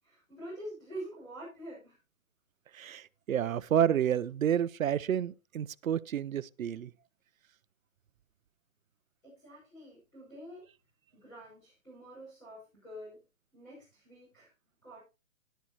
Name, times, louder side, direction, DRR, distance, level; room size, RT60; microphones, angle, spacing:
voice 1, 0.0-2.0 2.7-2.8 9.2-10.6 11.1-13.2 13.5-14.5 14.8-15.0, right 1 dB, 10° left, 6.2 m, -46 dB
voice 2, 2.7-6.9, right 9 dB, 85° right, 0.7 m, -30 dB
13.0 x 11.5 x 3.0 m
hypercardioid pair, 175°, 40 cm